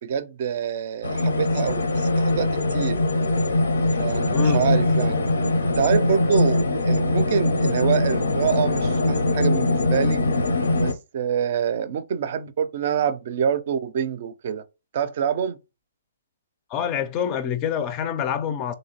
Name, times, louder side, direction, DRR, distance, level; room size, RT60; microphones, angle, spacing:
voice 1, 0.0-3.0 3.9-5.2 5.8-10.2 10.8-14.6 14.9-15.6, right 8 dB, 50° right, 0.4 m, -26 dB
sound 1, 1.0-10.9, left 2 dB, 85° left, 0.5 m, -22 dB
voice 2, 4.3-4.6 16.7-18.7, left 8 dB, 30° left, 0.4 m, -26 dB
3.1 x 2.6 x 2.8 m
hypercardioid pair, 135°, 0 cm